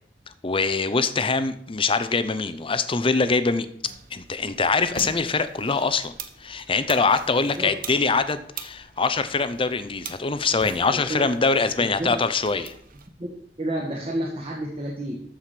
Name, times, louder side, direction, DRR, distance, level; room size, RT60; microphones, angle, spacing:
voice 1, 0.4-3.7 4.1-6.1 6.4-12.7, left 4 dB, 30° left, 12 dB, 0.7 m, -23 dB
sound 1, 3.8-13.1, right 6 dB, 55° right, 1.0 m, -43 dB
voice 2, 7.3-7.7 10.9-11.3 11.8-12.2 13.2-13.3 13.6-15.2, right 1 dB, 35° right, -2 dB, 1.6 m, -30 dB
13.5 x 5.0 x 5.9 m, 0.67 s
head